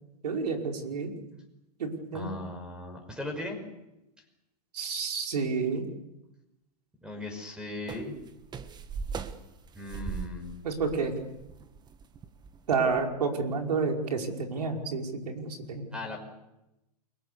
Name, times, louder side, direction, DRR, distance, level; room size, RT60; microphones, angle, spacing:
voice 1, 0.2-1.1 1.8-2.4 4.7-5.8 10.6-11.1 12.7-15.9, right 4 dB, 75° right, 2 dB, 5.4 m, -30 dB
voice 2, 2.1-3.6 7.0-8.2 9.7-10.5 15.9-16.2, left 2 dB, 5° right, 6 dB, 5.8 m, -38 dB
sound 1, 7.9-13.0, right 5 dB, 20° right, 1.5 m, -39 dB
29.5 x 22.5 x 7.0 m, 0.90 s
hypercardioid pair, 115°, 21 cm